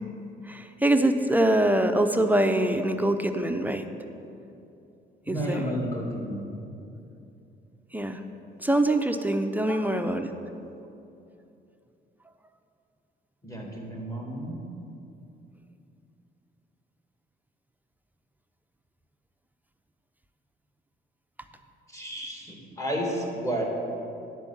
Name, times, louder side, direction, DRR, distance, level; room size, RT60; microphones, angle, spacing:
voice 1, 0.5-3.8 5.3-5.7 7.9-8.2 8.6-10.3, right 1 dB, 10° right, 7 dB, 0.5 m, -24 dB
voice 2, 5.2-6.5 9.7-9.8 13.4-14.6 21.9-23.6, equal, 15° left, -2 dB, 2.1 m, -32 dB
10.0 x 4.5 x 7.1 m, 2.7 s
cardioid pair, 90°, 20 cm